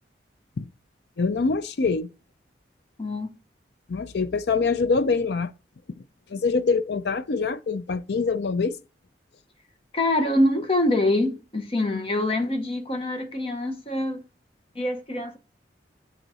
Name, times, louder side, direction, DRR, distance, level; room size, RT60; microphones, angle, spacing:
voice 1, 1.2-2.1 3.9-5.5 6.3-8.8, left 4 dB, 65° left, 0.5 m, -24 dB
voice 2, 9.9-14.2 14.7-15.4, left 1 dB, 30° left, 0.8 m, -25 dB
7.7 x 3.9 x 4.8 m
head